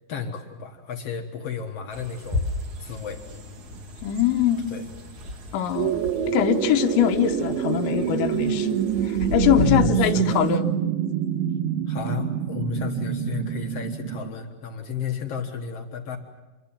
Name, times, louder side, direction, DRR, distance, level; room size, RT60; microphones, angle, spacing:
voice 1, 0.1-2.4 2.8-3.2 4.7-4.8 9.6-10.4 11.9-16.2, left 6 dB, 75° left, 3 dB, 1.4 m, -32 dB
sound 1, 1.9-10.6, left 1 dB, 45° right, 3.5 m, -34 dB
voice 2, 4.0-4.7 5.5-5.9 6.3-8.8 9.0-10.7, left 10 dB, 90° left, 4 dB, 3.3 m, -23 dB
sound 2, 5.8-14.3, right 9 dB, 90° right, 3.6 m, -26 dB
27.0 x 23.0 x 7.3 m, 1.2 s
omnidirectional pair, 5.2 m